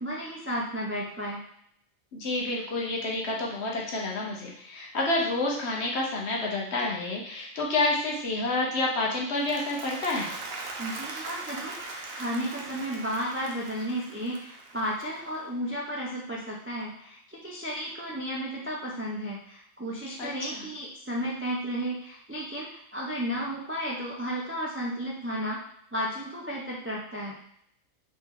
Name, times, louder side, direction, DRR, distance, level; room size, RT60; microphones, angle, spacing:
voice 1, 0.0-1.4 10.8-25.6 25.9-27.4, equal, 20° right, -4 dB, 0.3 m, -33 dB
voice 2, 2.1-10.3 20.2-20.6, left 2 dB, 60° left, -2 dB, 1.0 m, -29 dB
Applause, 9.2-15.6, right 3 dB, 60° right, 0.8 m, -40 dB
3.3 x 3.0 x 3.6 m, 0.70 s
omnidirectional pair, 1.4 m